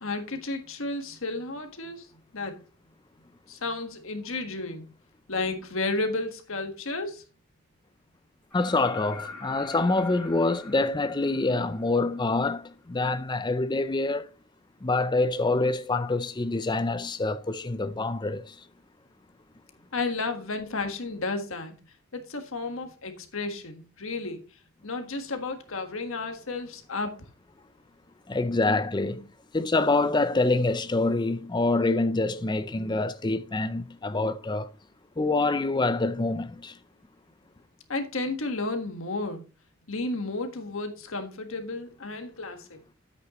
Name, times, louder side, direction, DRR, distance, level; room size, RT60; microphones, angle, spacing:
voice 1, 0.0-2.1 2.3-2.6 3.5-4.9 5.3-7.2 19.9-21.7 22.1-24.4 24.8-27.2 37.9-39.4 39.9-42.8, left 3 dB, 70° left, 1.6 m, -32 dB
voice 2, 8.5-14.3 14.8-18.6 28.3-34.7 35.2-36.8, left 2 dB, 20° left, 0.5 m, -26 dB
sound 1, 8.5-12.3 14.2-14.3, left 4 dB, 5° left, 5.9 m, -43 dB
9.9 x 8.3 x 3.0 m
head